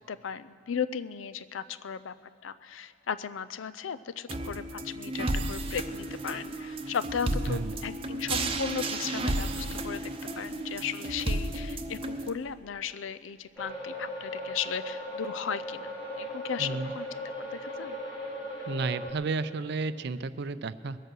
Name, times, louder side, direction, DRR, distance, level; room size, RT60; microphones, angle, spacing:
voice 1, 0.1-2.1 2.4-10.0 10.4-17.1 17.4-18.0, left 7 dB, 80° left, 14 dB, 0.5 m, -36 dB
sound 1, 4.3-12.3, right 2 dB, 30° right, 0.8 m, -33 dB
sound 2, 13.6-19.1, equal, 20° left, 1.9 m, -38 dB
voice 2, 16.6-16.9 18.7-21.0, right 4 dB, 60° right, 14 dB, 0.5 m, -32 dB
21.5 x 8.0 x 6.2 m, 2.7 s
head